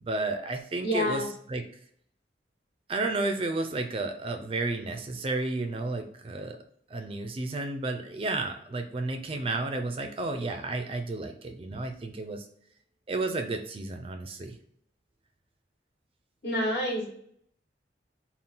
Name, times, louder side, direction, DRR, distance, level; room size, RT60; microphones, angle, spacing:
voice 1, 0.0-1.2 1.5-1.6 2.9-6.6 6.9-12.5 13.1-14.6, right 2 dB, 30° right, 6 dB, 0.3 m, -32 dB
voice 2, 0.8-1.3 16.4-17.1, equal, 65° left, -2 dB, 1.3 m, -28 dB
3.7 x 2.4 x 3.8 m, 0.66 s
head